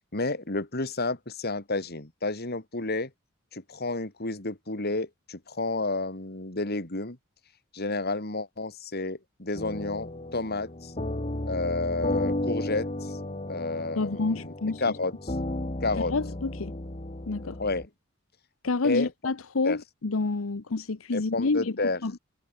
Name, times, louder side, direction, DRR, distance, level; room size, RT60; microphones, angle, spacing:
voice 1, 0.1-3.1 3.5-7.2 7.7-10.9 11.5-13.2 13.5-14.5 14.8-15.3 15.8-16.1 17.6-17.8 18.8-19.1 19.6-19.8 21.1-22.0, left 3 dB, 50° left, 2.9 m, -30 dB
sound 1, 9.5-17.9, left 1 dB, 35° left, 1.9 m, -34 dB
voice 2, 14.0-15.0 15.9-16.7 17.3-17.6 18.6-22.2, left 3 dB, 85° left, 0.9 m, -29 dB
head